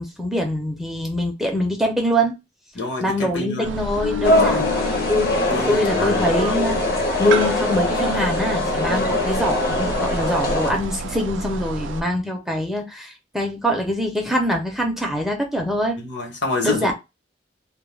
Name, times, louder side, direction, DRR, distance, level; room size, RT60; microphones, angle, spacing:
voice 1, 0.0-2.3 3.0-5.4 5.7-16.0 16.6-16.9, equal, ahead, 0.5 m, -24 dB
voice 2, 2.7-3.7 4.4-4.7 5.5-6.3 8.9-9.2 16.0-16.9, left 2 dB, 70° left, 1.0 m, -28 dB
sound 1, 3.6-12.0, right 2 dB, 90° right, 0.3 m, -31 dB
sound 2, 4.0-7.2 7.5-7.8, left 9 dB, 90° left, 0.3 m, -33 dB
sound 3, 4.2-10.7, left 2 dB, 55° left, 0.7 m, -22 dB
2.2 x 2.1 x 3.1 m
head